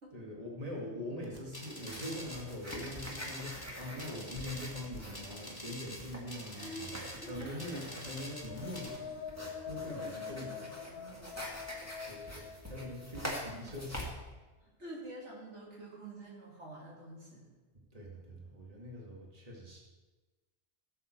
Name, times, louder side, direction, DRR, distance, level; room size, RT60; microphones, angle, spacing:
voice 1, 0.1-7.0 7.3-10.6 12.1-14.1 17.9-19.8, left 1 dB, 35° right, -2 dB, 2.3 m, -43 dB
sound 1, 1.2-8.9, equal, 20° left, 2.2 m, -47 dB
sound 2, 1.8-14.1, equal, 15° right, 2.3 m, -46 dB
voice 2, 6.6-7.5 9.9-11.5 14.6-17.4, right 1 dB, 90° right, -4 dB, 3.1 m, -48 dB
sound 3, 7.8-13.6, left 7 dB, 70° left, 1.0 m, -46 dB
16.5 x 7.4 x 4.5 m, 1.2 s
omnidirectional pair, 1.1 m